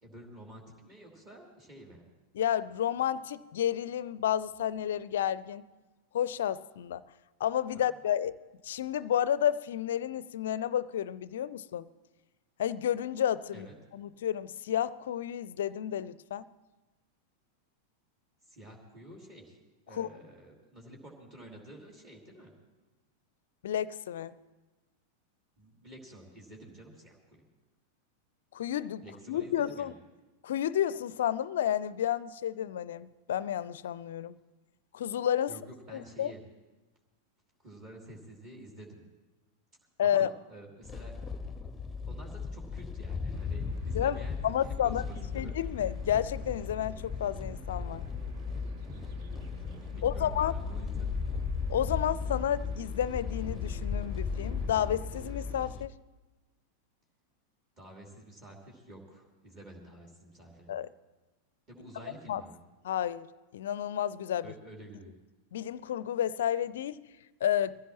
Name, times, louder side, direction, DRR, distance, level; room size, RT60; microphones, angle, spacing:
voice 1, 0.0-2.1 7.7-7.8 13.5-13.8 18.4-19.6 19.9-22.5 25.6-27.4 29.0-29.9 35.5-36.4 37.6-39.0 40.0-41.1 42.1-45.5 49.9-51.2 57.8-60.8 61.7-62.6 64.4-65.1, right 1 dB, 30° right, -1 dB, 2.9 m, -50 dB
voice 2, 2.3-5.6 6.1-7.0 7.4-8.4 8.6-11.9 12.6-13.7 13.9-16.4 19.9-20.1 23.6-24.4 28.5-29.9 30.4-34.4 34.9-35.5 35.9-36.3 40.0-40.3 43.9-45.0 45.3-48.0 50.0-50.5 51.7-55.9 60.7-60.9 62.3-62.4 62.8-63.3 63.5-64.5 65.5-67.0 67.4-67.8, left 10 dB, 60° left, 19 dB, 0.4 m, -31 dB
sound 1, 40.8-55.9, left 5 dB, 10° left, 0.8 m, -36 dB
sound 2, 43.3-55.6, right 4 dB, 50° right, 1.3 m, -52 dB
22.5 x 15.5 x 3.0 m, 1.2 s
figure-of-eight pair, 90°, 0 cm